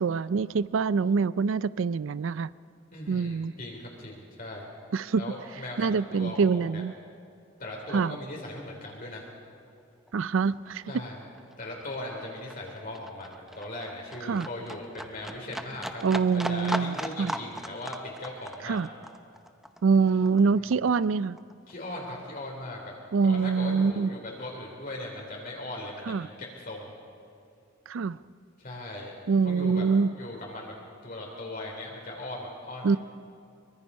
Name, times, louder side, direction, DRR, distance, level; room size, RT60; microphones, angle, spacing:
voice 1, 0.0-2.5 3.1-3.5 4.9-5.2 5.8-6.9 7.9-8.2 10.1-10.8 14.3-14.5 16.0-17.3 18.6-18.9 19.8-21.4 23.1-24.1 26.1-26.3 27.9-28.2 29.3-30.1 32.8-33.0, right 5 dB, 75° right, 18 dB, 0.4 m, -25 dB
voice 2, 2.9-4.7 5.2-6.8 7.6-9.2 10.9-11.3 11.6-16.0 16.3-18.8 21.7-22.9 23.2-26.9 28.6-29.1 29.4-29.8 30.2-30.7 31.0-32.9, left 1 dB, 45° left, -1 dB, 3.4 m, -39 dB
Livestock farm animals working animals, 9.7-9.8 10.1-21.1 21.4-22.4 22.7-22.8, equal, ahead, 0.7 m, -38 dB
24.0 x 23.5 x 5.5 m, 2.4 s
head